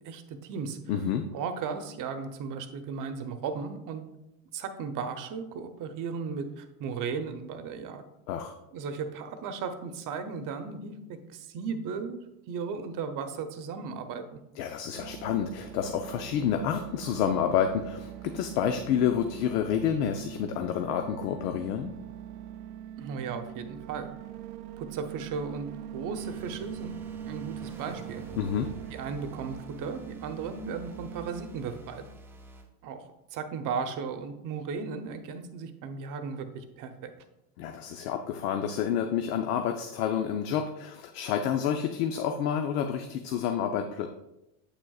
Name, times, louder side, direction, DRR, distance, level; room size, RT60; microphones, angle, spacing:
voice 1, 0.0-0.8 1.3-4.0 4.5-8.0 8.7-12.2 12.5-14.4 23.0-24.1 24.8-27.0 27.2-28.2 28.9-32.0 32.8-37.1, right 5 dB, 45° right, 8 dB, 0.8 m, -36 dB
voice 2, 0.9-1.2 8.3-8.5 14.6-21.9 28.4-28.7 37.6-44.1, left 8 dB, 80° left, 6 dB, 0.7 m, -29 dB
sound 1, 14.9-31.4, right 10 dB, 85° right, 0.6 m, -42 dB
sound 2, 26.2-32.7, equal, 5° right, 0.4 m, -50 dB
8.0 x 6.2 x 2.4 m, 0.91 s
supercardioid pair, 120°, 45 cm